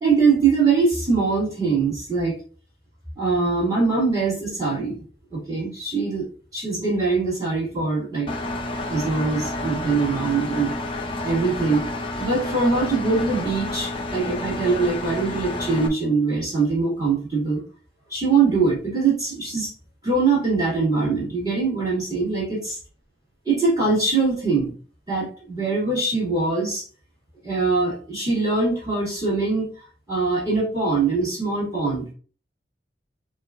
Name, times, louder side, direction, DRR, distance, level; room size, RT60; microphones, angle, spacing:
voice 1, 0.0-2.4 3.2-5.0 5.3-8.3 8.9-10.7 11.2-11.8 12.2-17.6 18.1-19.7 20.0-22.6 23.5-24.7 25.1-26.8 27.4-29.7 30.1-32.1, right 4 dB, 20° right, -7 dB, 2.4 m, -22 dB
Engine, 8.3-15.9, left 2 dB, 30° left, 0.6 m, -30 dB
7.0 x 2.6 x 2.5 m, 0.39 s
head